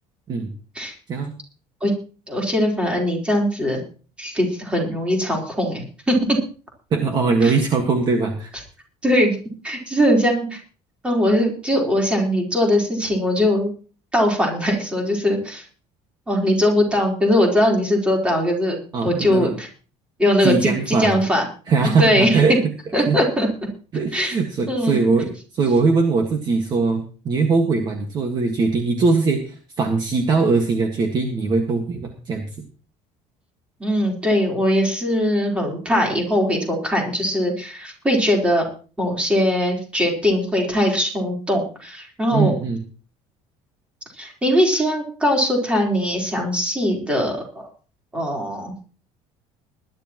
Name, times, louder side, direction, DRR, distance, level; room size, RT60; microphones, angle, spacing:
voice 1, 2.3-3.8 4.2-6.2 7.4-7.6 9.0-9.4 9.6-10.6 11.0-13.7 14.1-15.6 16.3-19.7 20.2-21.5 21.8-22.4 22.9-23.5 24.1-24.4 24.7-25.1 33.8-38.6 39.0-42.6 44.2-47.7 48.1-48.7, equal, 10° right, 0 dB, 4.0 m, -20 dB
voice 2, 6.9-8.5 18.9-19.5 20.4-21.2 21.7-22.6 23.1-23.2 23.9-25.3 25.5-32.5 42.3-42.8, right 4 dB, 30° right, 4 dB, 1.6 m, -21 dB
20.5 x 12.0 x 3.0 m, 0.37 s
cardioid pair, 170°, 13 cm